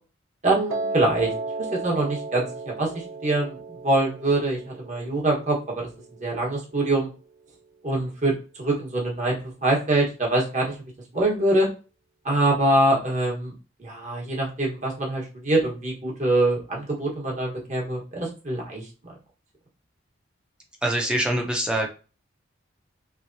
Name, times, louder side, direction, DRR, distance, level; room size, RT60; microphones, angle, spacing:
voice 1, 0.4-1.3 1.7-3.6 3.8-5.9 6.2-7.1 7.8-8.3 8.6-10.7 11.1-11.7 12.2-13.5 13.8-18.9, right 2 dB, 35° right, -2 dB, 1.4 m, -24 dB
Piano, 0.7-6.8, right 3 dB, 80° right, 0.8 m, -34 dB
voice 2, 20.8-21.9, right 1 dB, 5° right, 1 dB, 0.7 m, -24 dB
3.5 x 3.1 x 2.7 m, 0.34 s
head